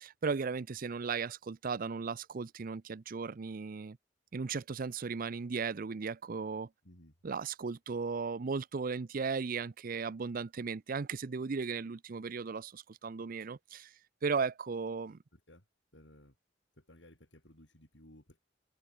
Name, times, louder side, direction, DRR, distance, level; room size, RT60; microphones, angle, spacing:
voice 1, 0.0-4.0 4.3-6.7 7.2-15.2, right 5 dB, 50° right, 0.5 m, -36 dB
voice 2, 6.8-7.1 15.3-15.6 15.9-16.4 16.8-18.4, left 1 dB, 75° left, 7.5 m, -58 dB
head